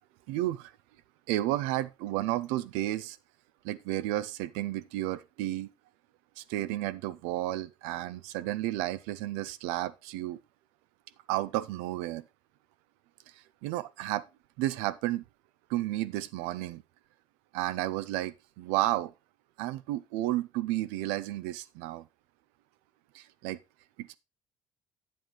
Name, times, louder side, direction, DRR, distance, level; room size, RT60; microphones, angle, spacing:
voice 1, 0.3-0.7 1.3-3.2 3.6-5.7 6.4-10.4 11.3-12.2 13.6-14.3 14.6-15.2 15.7-16.8 17.5-19.1 19.6-22.0 23.1-23.6 24.0-24.2, right 15 dB, 85° right, 0.5 m, -32 dB
8.8 x 7.6 x 3.0 m
supercardioid pair, 70°, 11 cm